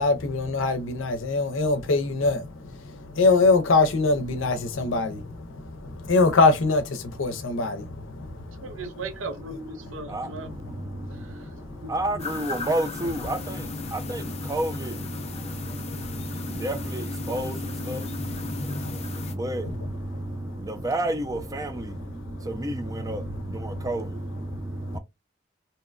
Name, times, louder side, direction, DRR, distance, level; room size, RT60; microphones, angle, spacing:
voice 1, 0.0-8.6 11.0-11.9 15.6-15.8 16.2-16.3 18.5-19.0 20.1-20.5 22.4-22.5 23.7-23.8 24.5-25.0, left 3 dB, 80° left, 0.6 m, -24 dB
voice 2, 8.6-10.5 11.1-11.9, right 3 dB, 85° right, 0.7 m, -38 dB
voice 3, 9.8-25.0, right 1 dB, 20° right, 0.4 m, -31 dB
sound 1, 12.2-19.3, left 4 dB, 35° left, 0.5 m, -36 dB
2.8 x 2.2 x 2.4 m
head